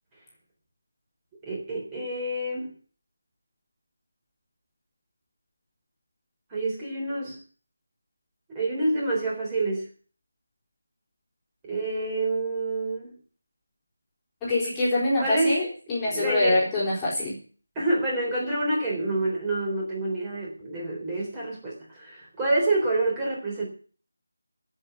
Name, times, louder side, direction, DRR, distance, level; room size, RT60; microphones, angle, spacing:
voice 1, 1.4-2.7 6.5-7.4 8.5-9.9 11.6-13.1 15.2-15.6 16.1-16.6 17.8-23.6, right 2 dB, 15° right, -3 dB, 3.7 m, -27 dB
voice 2, 14.4-17.4, left 2 dB, 10° left, -6 dB, 3.6 m, -25 dB
16.0 x 5.6 x 10.0 m, 0.41 s
figure-of-eight pair, 160°, 0 cm